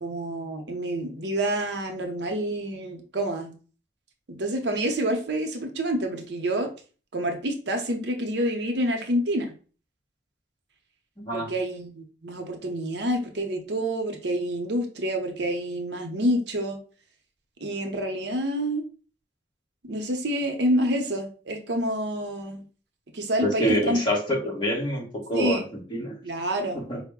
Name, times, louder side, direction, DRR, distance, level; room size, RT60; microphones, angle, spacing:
voice 1, 0.0-3.5 4.3-6.7 7.1-9.5 11.3-16.8 17.6-18.8 19.8-22.6 23.1-24.0 25.3-25.6 26.2-26.8, right 1 dB, 65° right, 4 dB, 0.7 m, -28 dB
voice 2, 11.2-11.5 23.4-26.2 26.7-27.0, equal, 25° left, -2 dB, 1.3 m, -26 dB
4.6 x 2.1 x 3.5 m, 0.37 s
head